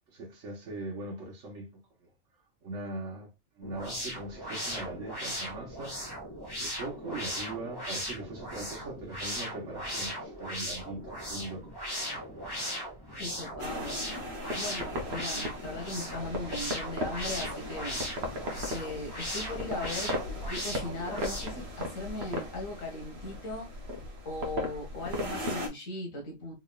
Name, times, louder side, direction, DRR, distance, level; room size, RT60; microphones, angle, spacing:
voice 1, 0.1-2.1 2.6-6.0 6.6-11.7, right 2 dB, 70° right, 1.5 m, -41 dB
sound 1, 3.6-21.7, equal, 20° left, 1.5 m, -38 dB
voice 2, 13.2-14.0 14.5-18.0 18.7-20.2 20.5-23.7 24.3-26.5, left 2 dB, 90° left, 1.9 m, -38 dB
sound 2, 13.6-25.7, left 1 dB, 55° right, 1.3 m, -37 dB
4.0 x 3.6 x 2.3 m
omnidirectional pair, 1.3 m